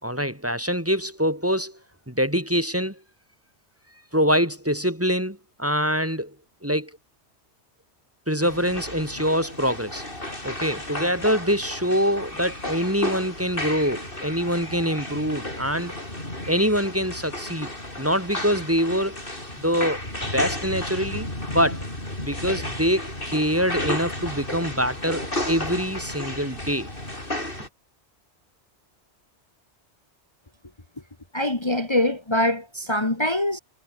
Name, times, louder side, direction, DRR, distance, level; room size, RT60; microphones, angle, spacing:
voice 1, 0.0-1.8 2.1-3.0 4.1-6.3 6.6-6.9 8.3-10.1 10.4-15.9 16.5-17.7 18.0-19.2 19.6-20.0 20.3-21.9 22.2-26.9, equal, 10° right, 3.0 m, -24 dB
sound 1, 8.4-27.7, left 1 dB, 50° left, 7.0 m, -33 dB
voice 2, 31.3-33.6, left 1 dB, 25° left, 2.0 m, -23 dB
omnidirectional pair, 1.1 m